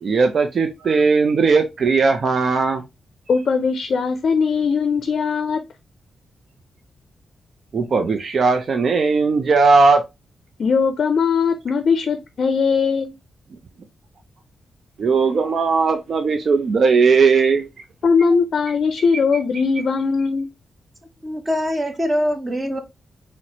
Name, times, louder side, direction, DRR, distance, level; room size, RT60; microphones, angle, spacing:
voice 1, 0.0-2.8 7.7-10.0 15.0-17.6, right 4 dB, 55° right, 0.5 m, -17 dB
voice 2, 3.3-5.6 10.6-13.1 18.0-20.5, left 5 dB, 60° left, 0.5 m, -19 dB
voice 3, 21.2-22.8, equal, 20° right, 0.8 m, -23 dB
4.1 x 2.1 x 2.8 m
cardioid pair, 100°, 0 cm